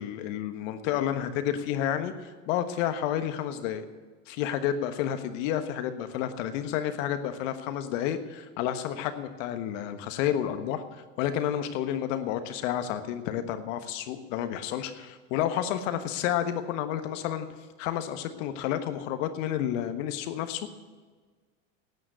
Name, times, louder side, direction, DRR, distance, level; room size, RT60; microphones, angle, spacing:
voice 1, 0.0-3.8 4.3-10.8 11.2-17.5 17.8-20.7, left 10 dB, 70° left, 9 dB, 1.4 m, -30 dB
11.5 x 9.4 x 9.1 m, 1.4 s
supercardioid pair, 110°, 38 cm